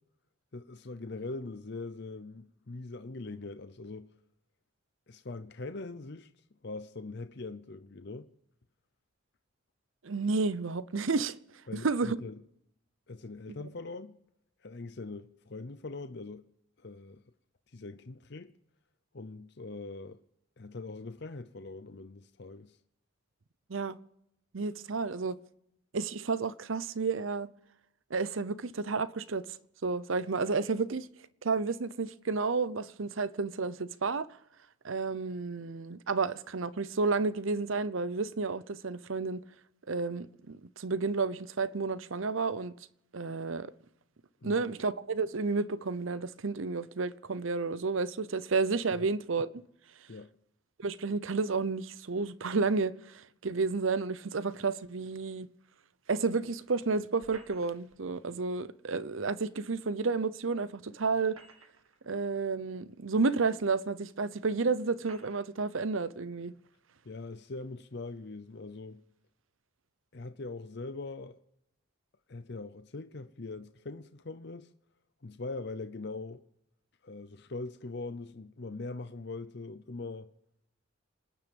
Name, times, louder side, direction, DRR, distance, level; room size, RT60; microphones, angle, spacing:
voice 1, 0.5-4.1 5.1-6.3 6.6-8.3 11.7-12.4 13.1-14.2 14.6-16.5 16.8-17.2 17.7-18.5 19.1-20.2 20.6-22.8 44.4-44.6 50.1-50.3 67.0-69.0 70.1-71.4 72.3-74.7 75.2-76.4 77.0-80.3, left 3 dB, 55° left, 0.7 m, -42 dB
voice 2, 10.0-11.3 11.7-12.2 23.7-24.0 24.5-25.4 25.9-27.5 28.1-29.6 29.8-31.1 31.4-34.3 34.8-39.4 39.9-42.7 43.1-43.7 44.4-49.5 50.8-55.5 56.1-61.4 62.1-66.5, right 4 dB, 75° right, 0.7 m, -31 dB
sound 1, 57.2-58.0 59.7-59.8 61.1-62.0 62.9-63.0 63.9-64.0 65.0-65.5, right 3 dB, 90° right, 2.2 m, -55 dB
27.0 x 10.0 x 5.3 m
head